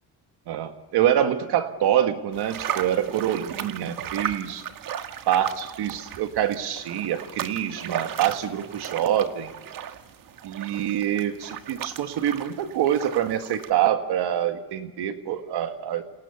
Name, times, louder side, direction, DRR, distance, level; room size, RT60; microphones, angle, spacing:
voice 1, 0.5-4.6 5.3-9.5 10.4-16.0, right 10 dB, 75° right, 7 dB, 1.8 m, -25 dB
sound 1, 2.3-13.7, right 9 dB, 55° right, 1.5 m, -36 dB
29.0 x 27.5 x 7.1 m, 1.3 s
cardioid pair, 135°, 39 cm